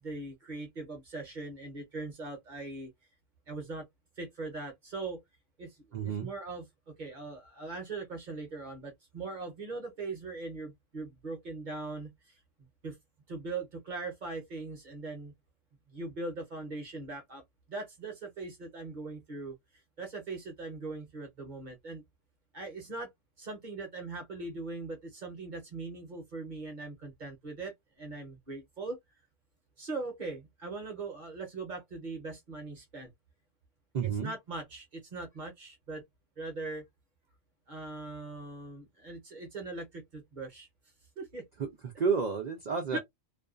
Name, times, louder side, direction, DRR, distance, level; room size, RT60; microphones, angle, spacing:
voice 1, 0.0-2.9 3.5-3.9 4.2-5.2 5.6-13.0 13.3-15.3 15.9-19.6 20.0-22.0 22.5-23.1 23.4-29.0 29.8-33.1 34.0-36.0 36.4-36.8 37.7-40.7 41.2-41.5 42.9-43.0, right 3 dB, 45° right, 0.8 m, -40 dB
voice 2, 5.9-6.3 33.9-34.3 41.6-43.0, right 6 dB, 90° right, 0.3 m, -31 dB
2.5 x 2.2 x 2.4 m
omnidirectional pair, 1.3 m